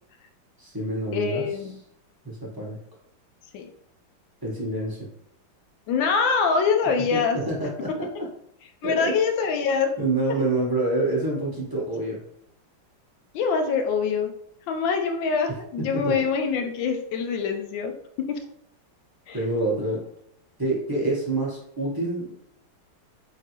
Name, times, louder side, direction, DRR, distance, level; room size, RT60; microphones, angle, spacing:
voice 1, 0.6-1.4 2.2-2.8 4.4-5.0 7.1-7.9 8.2-8.3 8.8-9.1 10.0-12.2 15.9-16.1 19.3-20.0 20.6-22.3, right 2 dB, 25° right, -6 dB, 0.5 m, -27 dB
voice 2, 1.1-1.7 3.5-3.7 5.9-7.4 8.8-9.9 10.3-10.5 13.3-14.3 14.7-17.9 18.3-18.4 19.3-19.4, left 5 dB, 80° left, 5 dB, 1.3 m, -24 dB
3.8 x 3.6 x 2.9 m, 0.72 s
omnidirectional pair, 2.1 m